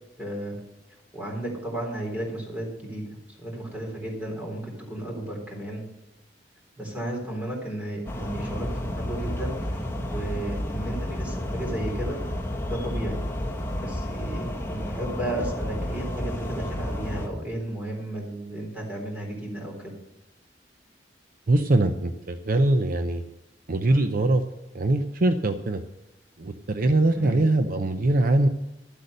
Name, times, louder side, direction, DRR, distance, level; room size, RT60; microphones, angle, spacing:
voice 1, 0.2-0.6 1.1-3.0 3.3-5.8 6.8-12.2 12.7-13.2 13.8-19.9 27.1-27.4, right 1 dB, 10° right, -2 dB, 3.7 m, -33 dB
sound 1, 8.1-17.3, left 1 dB, 15° left, 1.5 m, -31 dB
voice 2, 21.5-23.2 23.7-24.4 24.7-25.8 26.4-28.5, right 2 dB, 50° right, 8 dB, 0.6 m, -22 dB
12.5 x 8.2 x 6.6 m, 0.92 s
head